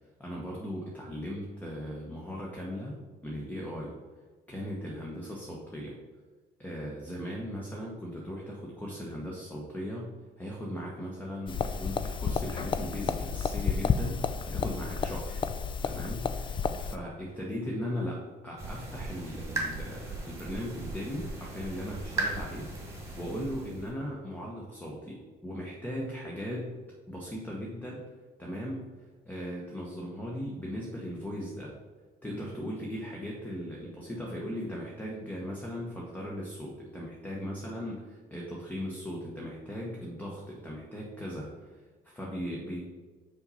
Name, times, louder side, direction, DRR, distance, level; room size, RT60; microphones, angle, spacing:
voice 1, 0.2-3.9 4.5-6.0 6.6-15.5 15.8-26.8 27.1-28.1 28.4-28.8 29.2-31.8 32.2-42.8, equal, 10° left, -3 dB, 1.0 m, -38 dB
sound 1, 11.5-17.0, left 6 dB, 30° left, 0.4 m, -31 dB
sound 2, 18.6-23.9, right 2 dB, 15° right, 1.6 m, -37 dB
5.5 x 4.1 x 5.6 m, 1.4 s
cardioid pair, 110°, 17 cm